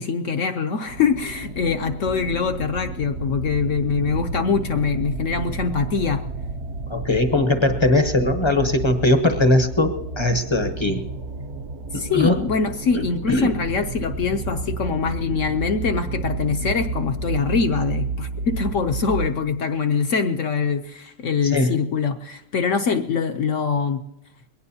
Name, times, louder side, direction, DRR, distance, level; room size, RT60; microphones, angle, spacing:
voice 1, 0.0-6.2 11.9-24.0, left 5 dB, 65° left, 8 dB, 0.8 m, -23 dB
sound 1, 0.8-19.3, right 3 dB, 55° right, 0.7 m, -31 dB
voice 2, 6.9-11.0 11.9-12.4 12.9-13.5 21.4-21.7, left 2 dB, 30° left, 7 dB, 0.5 m, -20 dB
21.5 x 17.5 x 2.8 m, 0.90 s
omnidirectional pair, 1.9 m